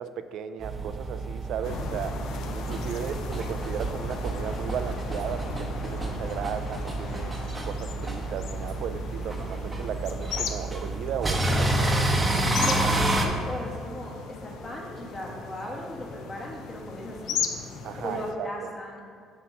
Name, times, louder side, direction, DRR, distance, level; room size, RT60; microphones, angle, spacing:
voice 1, 0.0-2.2 2.5-7.3 7.6-11.9 17.8-18.5, right 8 dB, 70° right, 10 dB, 0.3 m, -35 dB
sound 1, 0.6-13.3, right 2 dB, 20° right, 0.8 m, -29 dB
sound 2, 1.6-18.3, left 6 dB, 80° left, 0.5 m, -37 dB
voice 2, 2.4-2.8 12.6-17.5 18.0-19.0, left 1 dB, 25° left, -2 dB, 1.3 m, -37 dB
7.2 x 3.0 x 5.7 m, 2.3 s
cardioid pair, 105°, 0 cm